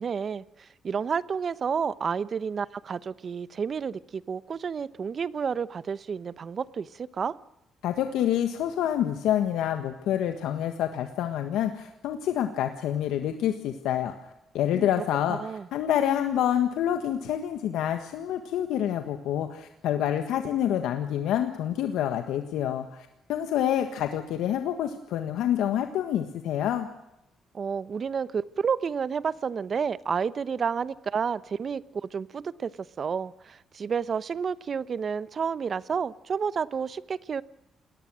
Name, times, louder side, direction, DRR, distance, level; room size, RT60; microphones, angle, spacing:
voice 1, 0.0-7.3 14.7-14.9 15.3-15.7 27.5-37.4, right 6 dB, 45° right, 17 dB, 0.9 m, -30 dB
voice 2, 7.8-14.1 14.5-26.9, left 10 dB, 90° left, 7 dB, 1.6 m, -27 dB
28.5 x 19.0 x 6.3 m, 0.88 s
cardioid pair, 90°, 0 cm